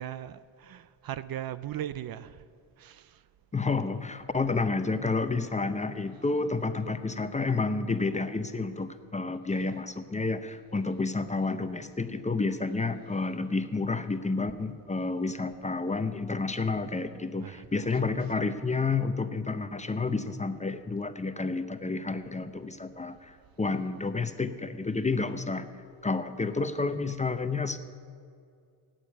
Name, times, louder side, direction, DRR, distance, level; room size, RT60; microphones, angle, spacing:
voice 1, 0.0-2.4 2.8-3.2 9.5-9.7 17.4-18.2, right 11 dB, 55° right, 15 dB, 0.5 m, -39 dB
voice 2, 3.5-25.7 26.0-27.8, left 3 dB, 15° left, 10 dB, 0.6 m, -30 dB
12.0 x 8.9 x 9.1 m, 2.3 s
cardioid pair, 105°, 44 cm